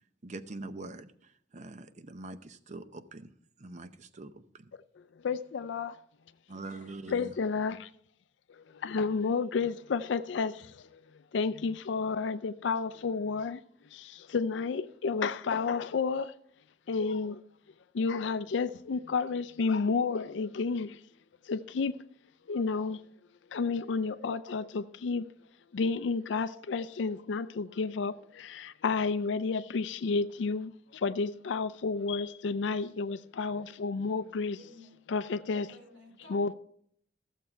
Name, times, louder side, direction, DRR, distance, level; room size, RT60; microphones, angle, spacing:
voice 1, 0.2-3.3 3.6-4.7 6.5-7.3, right 2 dB, 40° right, 0.7 m, -44 dB
voice 2, 5.2-6.0 7.1-7.9 8.5-11.0 11.3-13.6 13.9-16.3 16.9-17.4 17.9-21.0 21.5-22.0 22.5-23.0 23.5-25.3 25.7-34.6 35.1-35.8 36.3-36.5, left 4 dB, 70° left, 0.4 m, -31 dB
voice 3, 34.5-35.0 35.7-36.6, left 1 dB, 80° right, 3.2 m, -54 dB
14.5 x 7.3 x 4.4 m
head